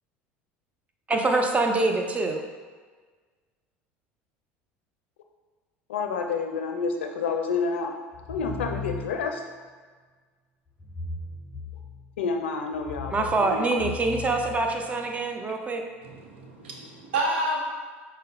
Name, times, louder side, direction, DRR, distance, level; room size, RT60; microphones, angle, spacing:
voice 1, 1.1-2.4 13.1-15.8, right 3 dB, 20° right, 3 dB, 0.6 m, -25 dB
voice 2, 5.9-7.9 8.3-9.4 12.2-13.6, left 5 dB, 85° left, 4 dB, 0.4 m, -29 dB
sound 1, 8.1-9.4 10.8-12.2 12.7-15.2, left 3 dB, 20° left, 0.5 m, -38 dB
voice 3, 16.0-17.6, right 1 dB, 80° right, 0 dB, 0.8 m, -29 dB
5.2 x 2.1 x 3.9 m, 1.5 s
hypercardioid pair, 80°, 6 cm